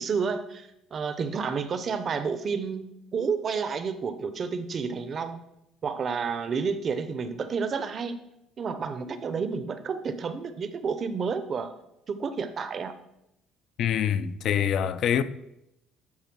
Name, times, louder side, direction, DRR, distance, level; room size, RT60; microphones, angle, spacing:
voice 1, 0.0-5.4 5.8-8.2 8.6-11.7 12.1-12.9, right 5 dB, 30° right, 0.6 m, -30 dB
voice 2, 13.8-15.2, left 9 dB, 45° left, 0.4 m, -25 dB
12.0 x 4.0 x 6.0 m
cardioid pair, 175°, 0 cm